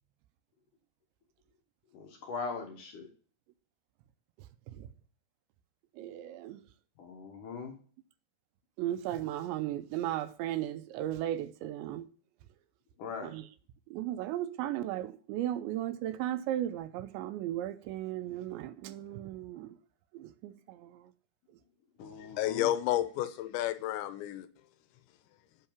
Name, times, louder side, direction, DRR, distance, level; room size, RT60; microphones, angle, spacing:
voice 1, 1.9-3.1 7.0-7.7 13.0-13.3 22.0-22.7, left 5 dB, 65° left, 2.2 m, -40 dB
voice 2, 6.0-6.6 8.8-12.1 13.2-13.5 13.9-19.8 20.1-21.1, right 12 dB, 85° right, 2.9 m, -36 dB
voice 3, 22.2-24.5, left 13 dB, 85° left, 3.0 m, -31 dB
8.8 x 5.7 x 7.0 m
omnidirectional pair, 5.3 m